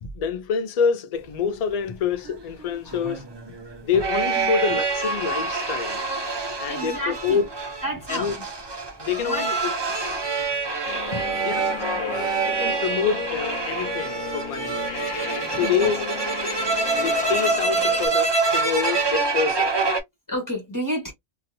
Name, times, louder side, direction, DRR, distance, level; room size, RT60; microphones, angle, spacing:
voice 1, 0.0-3.2 3.8-6.0 6.6-7.5 8.1-8.4 9.0-9.6 11.1-11.7 12.0-14.9 15.3-16.0 17.0-19.7, left 6 dB, 60° left, 0.4 m, -27 dB
sound 1, 2.2-20.0, right 4 dB, 30° right, 0.5 m, -26 dB
voice 2, 2.8-3.2 4.3-4.5 6.7-7.4 7.8-8.5 9.2-9.5 11.2-12.3 15.5-15.9 20.3-21.1, equal, 15° left, 1.6 m, -32 dB
sound 2, 10.9-18.1, left 7 dB, 85° left, 1.2 m, -34 dB
2.9 x 2.8 x 2.6 m
omnidirectional pair, 1.3 m